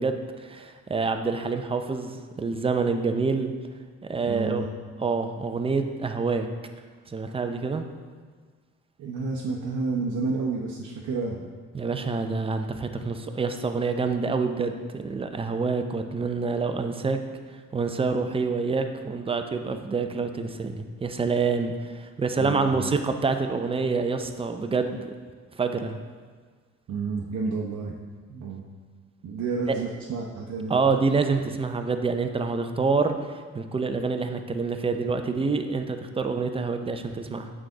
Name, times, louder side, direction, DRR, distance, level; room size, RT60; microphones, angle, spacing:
voice 1, 0.0-3.5 4.1-4.7 5.0-6.5 7.1-7.9 11.7-17.2 17.7-25.1 25.6-26.0 29.7-29.8 30.7-37.5, right 4 dB, 20° right, 6 dB, 0.5 m, -27 dB
voice 2, 4.2-4.7 9.0-11.4 22.4-22.9 26.9-27.9 28.3-28.6 29.2-30.8, right 4 dB, 65° right, -1 dB, 0.8 m, -30 dB
7.3 x 4.8 x 3.8 m, 1.5 s
cardioid pair, 90°, 30 cm